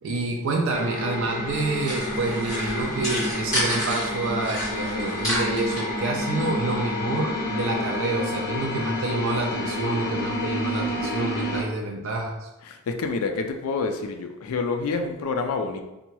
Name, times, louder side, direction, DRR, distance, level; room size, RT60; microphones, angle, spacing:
voice 1, 0.0-12.5, right 3 dB, 60° right, 1 dB, 0.3 m, -28 dB
sound 1, 0.7-11.6, left 1 dB, 40° left, 0.7 m, -29 dB
sound 2, 1.5-4.1 4.4-5.8, equal, 15° left, 1.5 m, -30 dB
voice 2, 12.7-15.8, left 4 dB, 70° left, 5 dB, 0.3 m, -28 dB
2.7 x 2.2 x 2.9 m, 1.0 s
head